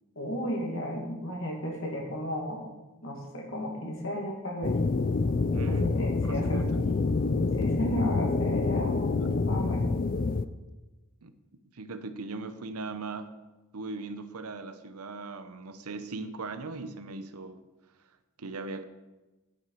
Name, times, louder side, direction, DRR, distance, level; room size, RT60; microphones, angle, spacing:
voice 1, 0.2-2.7 3.0-4.8 5.7-6.8 7.5-9.2 9.4-10.0, equal, 60° left, 0 dB, 2.3 m, -34 dB
sound 1, 4.6-10.5, left 3 dB, 40° left, 0.4 m, -27 dB
voice 2, 5.5-7.2 9.2-9.3 11.2-11.3 11.7-13.4 13.7-17.6 18.4-18.8, right 3 dB, 85° right, 11 dB, 0.8 m, -39 dB
9.5 x 8.1 x 4.8 m, 1.1 s
head